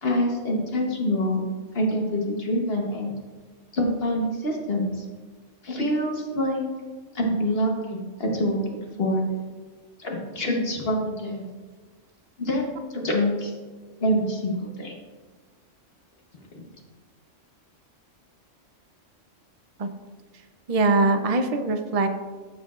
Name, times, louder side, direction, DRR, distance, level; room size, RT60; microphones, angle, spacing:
voice 1, 0.0-1.4 1.7-3.2 3.7-5.0 5.6-6.6 7.1-9.2 10.0-11.5 12.4-12.6 12.9-13.5 14.0-14.9 16.5-16.6, equal, 50° left, 0 dB, 1.3 m, -26 dB
voice 2, 20.3-22.1, right 3 dB, 45° right, 7 dB, 0.5 m, -23 dB
14.0 x 5.0 x 2.4 m, 1.4 s
omnidirectional pair, 1.3 m